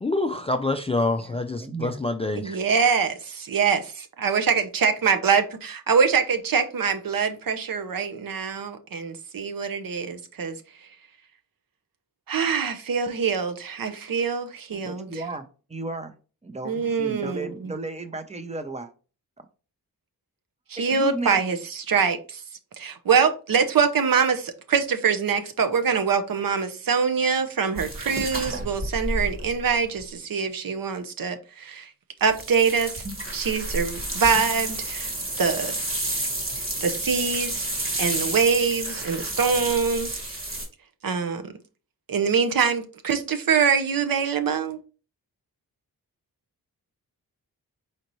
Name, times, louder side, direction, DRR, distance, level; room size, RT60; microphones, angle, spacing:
voice 1, 0.0-2.6, left 2 dB, 15° left, 0.3 m, -26 dB
voice 2, 1.2-2.0 14.7-16.1 16.4-18.9 20.9-21.4, right 3 dB, 20° right, 0.7 m, -34 dB
voice 3, 2.4-3.8 4.2-10.6 12.3-15.1 16.6-17.7 20.7-22.4 22.8-31.9 32.2-33.0 33.3-35.1 35.4-35.7 36.8-37.7 38.0-40.2 41.0-41.5 42.1-44.8, right 6 dB, 65° right, 0.7 m, -24 dB
sound 1, 27.8-30.0 32.3-40.7, right 1 dB, 35° right, 1.4 m, -30 dB
4.3 x 3.9 x 3.0 m
wide cardioid pair, 100°, 36 cm